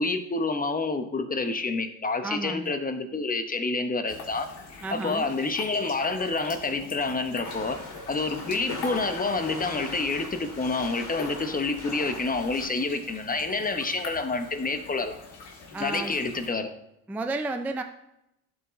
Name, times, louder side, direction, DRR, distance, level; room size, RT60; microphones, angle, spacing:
voice 1, 0.0-4.5 4.9-7.8 8.1-15.2 15.8-16.7, left 3 dB, 20° left, 8 dB, 0.9 m, -28 dB
voice 2, 2.2-2.8 4.8-5.3 15.7-16.1 17.1-17.8, right 2 dB, 5° right, 6 dB, 0.4 m, -32 dB
sound 1, 4.1-16.5, left 4 dB, 60° left, 1.9 m, -43 dB
sound 2, 7.4-12.7, left 3 dB, 40° left, 2.2 m, -40 dB
12.0 x 4.4 x 3.2 m, 0.83 s
hypercardioid pair, 65°, 45 cm